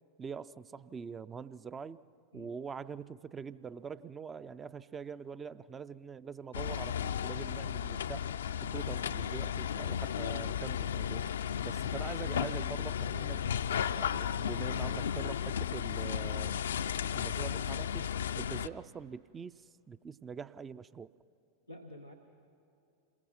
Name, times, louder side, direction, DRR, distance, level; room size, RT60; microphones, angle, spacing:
voice 1, 0.2-2.0 2.3-8.3 8.6-11.2 11.6-13.6 13.9-16.6 17.1-18.1 18.4-21.1, right 6 dB, 20° right, 16 dB, 0.4 m, -44 dB
sound 1, 6.5-18.7, left 8 dB, 65° left, 0.4 m, -34 dB
voice 2, 12.9-13.3 13.8-14.5 21.7-22.1, equal, 90° right, 2 dB, 1.3 m, -50 dB
28.0 x 21.5 x 5.8 m, 2.7 s
figure-of-eight pair, 90°, 0 cm